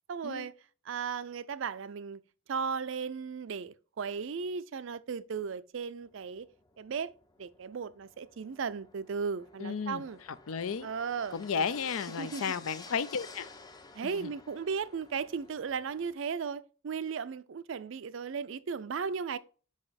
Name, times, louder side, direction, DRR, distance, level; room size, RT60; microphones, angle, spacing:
voice 1, 0.1-0.5 0.8-2.2 2.5-6.5 6.8-7.1 7.4-10.2 10.8-11.6 12.2-12.5 13.9-19.4, right 6 dB, 65° right, 0.4 m, -36 dB
sound 1, 6.0-16.1, left 3 dB, 20° left, 0.5 m, -52 dB
voice 2, 9.6-10.0 10.5-10.9 11.3-13.5 14.0-14.3, left 6 dB, 85° left, 0.5 m, -33 dB
5.3 x 4.9 x 4.1 m
head